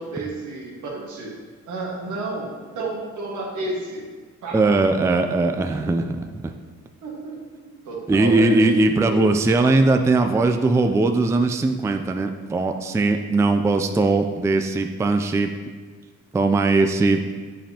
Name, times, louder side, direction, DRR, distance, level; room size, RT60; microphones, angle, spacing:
voice 1, 0.0-1.4 1.7-4.1 4.4-4.7 7.0-7.4 7.6-8.5 9.0-9.3, right 2 dB, 80° right, -2 dB, 1.6 m, -31 dB
voice 2, 4.5-6.2 6.4-6.5 8.1-15.5 16.3-17.3, right 3 dB, 10° right, 6 dB, 0.3 m, -20 dB
7.6 x 5.3 x 2.8 m, 1.5 s
cardioid pair, 90°, 30 cm